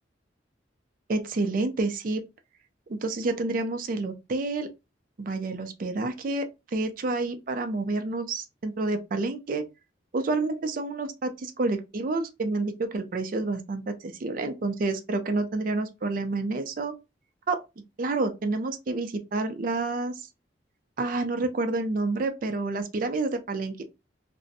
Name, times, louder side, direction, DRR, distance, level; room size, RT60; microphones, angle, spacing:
voice 1, 1.1-2.2 2.9-4.7 5.2-9.7 10.1-16.9 17.5-20.1 21.0-23.8, right 3 dB, 45° right, 0.4 m, -29 dB
2.5 x 2.1 x 2.6 m
head